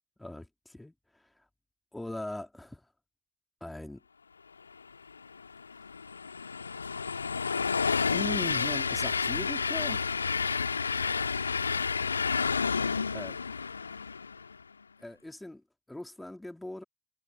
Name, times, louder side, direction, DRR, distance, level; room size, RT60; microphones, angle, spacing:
voice 1, 0.2-1.3 1.9-2.8 3.6-4.0 8.1-10.1 13.1-13.4 15.0-16.8, left 1 dB, 5° left, 3.1 m, -40 dB
Train, 5.1-14.6, left 5 dB, 85° left, 2.3 m, -30 dB
figure-of-eight pair, 70°, 0 cm